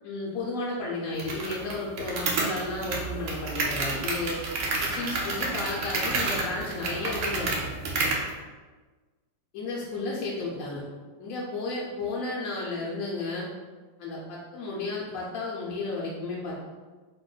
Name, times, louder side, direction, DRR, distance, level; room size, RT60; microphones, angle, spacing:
voice 1, 0.0-4.4 4.8-7.8 9.5-10.8 11.2-13.5 14.0-16.5, left 3 dB, 70° left, -5 dB, 0.8 m, -33 dB
sound 1, 1.2-8.3, right 3 dB, 80° right, 0.6 m, -30 dB
2.9 x 2.1 x 3.8 m, 1.3 s
omnidirectional pair, 1.9 m